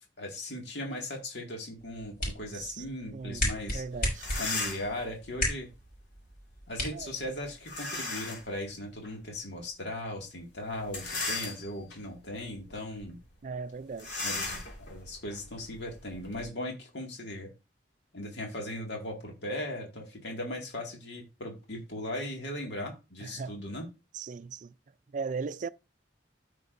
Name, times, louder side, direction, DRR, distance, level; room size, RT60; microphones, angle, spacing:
voice 1, 0.2-3.8 4.3-5.7 6.7-13.2 14.2-17.5 18.1-23.9, left 1 dB, 70° left, 2.1 m, -38 dB
sound 1, 1.8-7.8, left 1 dB, 50° left, 6.0 m, -36 dB
voice 2, 3.1-4.3 6.9-7.1 13.4-14.2 23.2-23.6 24.1-24.7 25.1-25.7, right 5 dB, 45° right, 0.4 m, -38 dB
sound 2, 3.8-3.9 4.1-5.0 7.7-8.5 9.0-9.1 10.8-11.9 12.5-12.7 13.0-13.1 14.0-16.4, left 3 dB, 90° left, 3.2 m, -36 dB
13.5 x 6.1 x 2.6 m
head